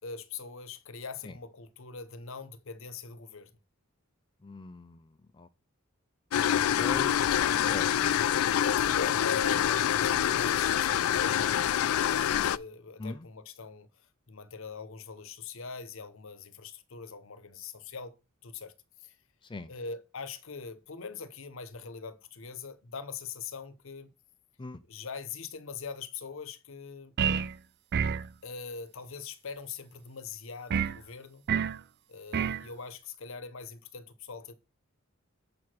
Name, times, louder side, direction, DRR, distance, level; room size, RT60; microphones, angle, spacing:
voice 1, 0.0-3.5 7.5-7.9 8.6-13.9 14.3-18.2 18.4-18.7 19.0-19.2 19.7-24.1 24.9-27.1 28.4-31.4 32.1-34.5, left 5 dB, 65° left, 0.9 m, -42 dB
voice 2, 4.4-5.5 6.7-7.9 13.0-13.3 19.4-19.7 24.6-24.8, left 2 dB, 25° left, 0.4 m, -41 dB
sound 1, 6.3-12.6, left 10 dB, 90° left, 0.3 m, -26 dB
sound 2, 27.2-27.5 27.9-28.3 30.7-31.0 31.5-31.8 32.3-32.6, right 7 dB, 50° right, 0.4 m, -28 dB
6.9 x 4.8 x 6.0 m
head